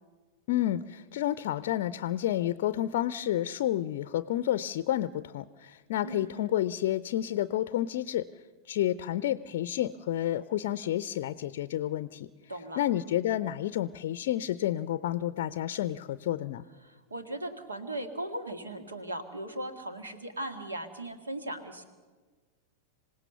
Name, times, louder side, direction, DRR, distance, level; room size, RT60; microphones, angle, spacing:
voice 1, 0.5-8.2 8.7-12.3 12.8-16.7, left 12 dB, 55° left, 15 dB, 0.5 m, -30 dB
voice 2, 6.0-6.5 12.5-12.8 16.8-21.8, right 1 dB, 75° right, 8 dB, 2.0 m, -38 dB
26.5 x 17.0 x 6.8 m, 1.4 s
figure-of-eight pair, 90°, 0 cm